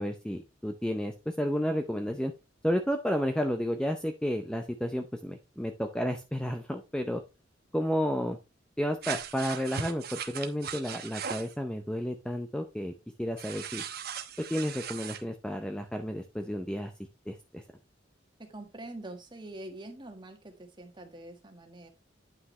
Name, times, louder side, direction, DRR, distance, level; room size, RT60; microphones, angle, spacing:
voice 1, 0.0-2.3 2.6-7.2 7.7-8.4 8.8-12.9 13.2-13.8 14.5-16.9 17.3-17.6, equal, 5° left, 5 dB, 0.5 m, -31 dB
sound 1, 9.0-11.5 13.4-15.2, right 7 dB, 55° right, 0.9 m, -38 dB
voice 2, 18.4-21.9, right 1 dB, 25° right, 4 dB, 1.5 m, -45 dB
9.6 x 5.8 x 3.2 m, 0.26 s
head